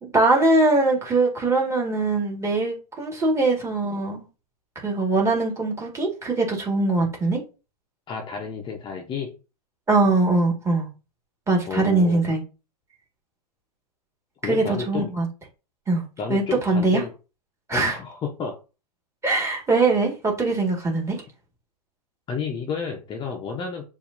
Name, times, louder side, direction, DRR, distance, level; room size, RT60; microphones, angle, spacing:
voice 1, 0.0-4.2 4.7-7.4 9.9-10.9 11.5-12.4 14.4-15.2 15.9-16.0 16.3-17.0 17.7-18.0 19.2-21.2, right 3 dB, 15° right, 1.8 m, -22 dB
voice 2, 8.1-9.3 11.7-12.2 14.4-15.1 16.2-17.1 17.7-18.6 22.3-23.8, left 6 dB, 20° left, 0.8 m, -31 dB
6.8 x 2.7 x 2.6 m
hypercardioid pair, 115°, 21 cm